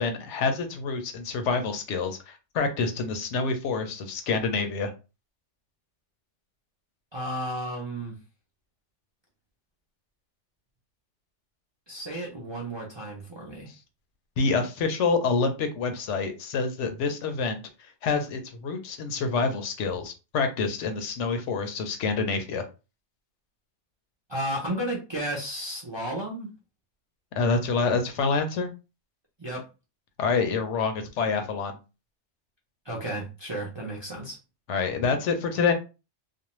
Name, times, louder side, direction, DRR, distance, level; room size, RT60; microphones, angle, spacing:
voice 1, 0.0-4.9 14.4-17.6 18.0-22.7 27.4-28.7 30.2-31.8 34.7-35.7, left 4 dB, 80° left, 0.9 m, -27 dB
voice 2, 7.1-8.2 11.9-13.7 24.3-26.5 29.4-29.6 32.8-34.4, right 1 dB, 35° right, 0.4 m, -33 dB
2.5 x 2.0 x 2.9 m
omnidirectional pair, 1.2 m